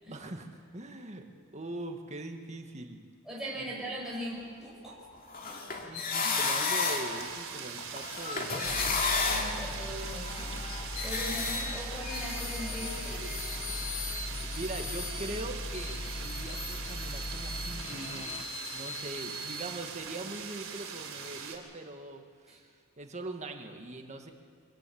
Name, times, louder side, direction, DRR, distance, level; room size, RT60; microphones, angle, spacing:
voice 1, 0.1-1.3 1.5-3.0 3.6-3.8 5.8-8.9 14.4-18.3 18.7-22.7 23.0-24.3, right 2 dB, 35° right, 4 dB, 1.8 m, -42 dB
voice 2, 3.3-5.0 5.4-5.6 6.0-6.3 9.3-10.6 11.0-13.3 22.5-22.6, equal, ahead, -5 dB, 6.0 m, -40 dB
sound 1, 5.1-7.4 7.8-15.4 15.7-19.7, left 4 dB, 45° left, 2.4 m, -35 dB
sound 2, 6.3-21.6, right 6 dB, 65° right, 3.6 m, -42 dB
sound 3, 8.6-18.4, left 1 dB, 25° left, 0.7 m, -40 dB
24.5 x 15.0 x 8.6 m, 2.1 s
head